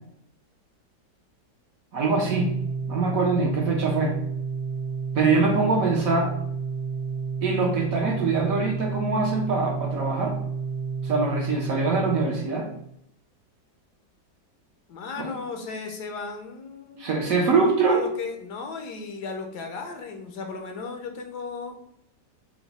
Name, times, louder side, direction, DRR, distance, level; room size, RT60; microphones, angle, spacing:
voice 1, 1.9-2.5 2.9-4.2 5.1-6.3 7.4-10.3 11.0-12.7 15.2-15.3 17.0-18.0, right 3 dB, 60° right, 0 dB, 1.0 m, -23 dB
Organ, 2.0-12.9, right 5 dB, 85° right, 1.3 m, -31 dB
voice 2, 14.9-17.1 17.9-21.7, left 4 dB, 75° left, 4 dB, 1.2 m, -35 dB
5.9 x 2.2 x 4.0 m, 0.73 s
omnidirectional pair, 1.9 m